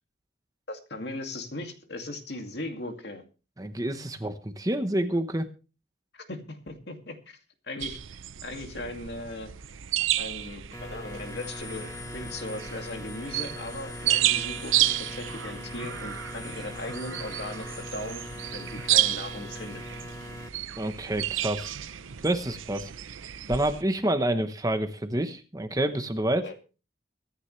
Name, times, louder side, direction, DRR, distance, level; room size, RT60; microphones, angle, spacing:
voice 1, 0.7-3.2 6.1-7.4 7.6-8.0 8.4-9.5 10.2-18.2 18.5-19.8 26.4-26.6, left 2 dB, 55° left, 5 dB, 2.4 m, -38 dB
voice 2, 3.6-5.5 20.8-21.7 22.2-22.9 23.5-26.5, right 1 dB, 20° right, 9 dB, 1.0 m, -28 dB
sound 1, 7.8-23.8, right 13 dB, 85° right, 0.7 m, -31 dB
sound 2, 10.7-20.5, left 1 dB, 15° left, 1.3 m, -41 dB
24.0 x 10.0 x 3.2 m, 0.33 s
head